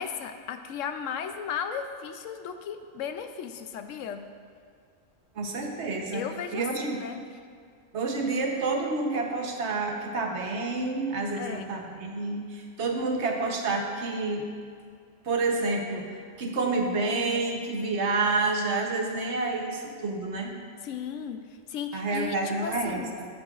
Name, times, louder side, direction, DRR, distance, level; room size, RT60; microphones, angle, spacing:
voice 1, 0.0-4.3 6.1-7.2 11.4-11.7 20.8-21.4 21.7-23.1, left 7 dB, 90° left, 8 dB, 0.9 m, -35 dB
voice 2, 5.3-6.2 6.5-7.0 7.9-14.4 15.2-20.5 21.9-23.3, right 3 dB, 65° right, 2 dB, 1.2 m, -29 dB
13.0 x 6.8 x 2.4 m, 2.2 s
omnidirectional pair, 1.3 m